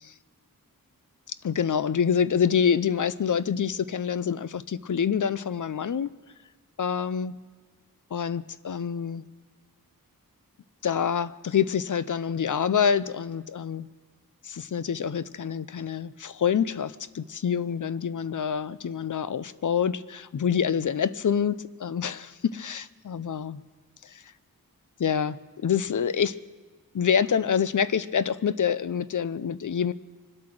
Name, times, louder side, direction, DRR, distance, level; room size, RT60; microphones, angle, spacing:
voice 1, 1.4-6.1 6.8-7.3 8.1-9.2 10.8-13.9 14.4-23.6 24.0-24.2 25.0-26.4 26.9-29.9, left 7 dB, 60° left, 16 dB, 0.6 m, -26 dB
24.5 x 8.7 x 6.2 m, 1.4 s
wide cardioid pair, 80°, 35 cm